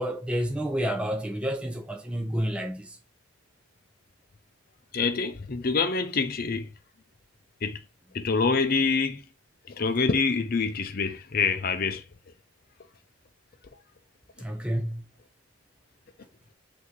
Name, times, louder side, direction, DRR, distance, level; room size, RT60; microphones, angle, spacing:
voice 1, 0.0-3.0 14.4-15.0, equal, 5° right, 0.6 m, -29 dB
voice 2, 4.9-6.7 7.6-7.8 8.1-9.2 9.7-12.0, left 4 dB, 45° left, 0.6 m, -26 dB
5.9 x 2.8 x 3.1 m
head